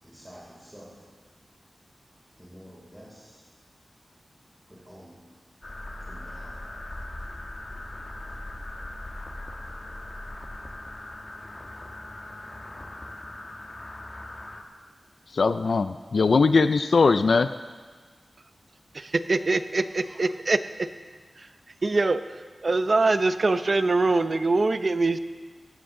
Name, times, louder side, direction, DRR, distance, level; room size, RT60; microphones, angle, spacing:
voice 1, 0.0-1.1 2.4-3.5 4.7-5.3 6.0-6.7, equal, 5° right, -7 dB, 5.6 m, -49 dB
sound 1, 5.6-14.6, left 1 dB, 35° left, 1.5 m, -39 dB
voice 2, 15.3-17.5, left 4 dB, 75° left, 11 dB, 0.4 m, -20 dB
voice 3, 18.9-20.6 21.4-21.5 21.8-22.2 22.6-25.2, right 3 dB, 50° right, 11 dB, 0.6 m, -23 dB
17.5 x 15.0 x 3.8 m, 1.5 s
wide cardioid pair, 95°, 0 cm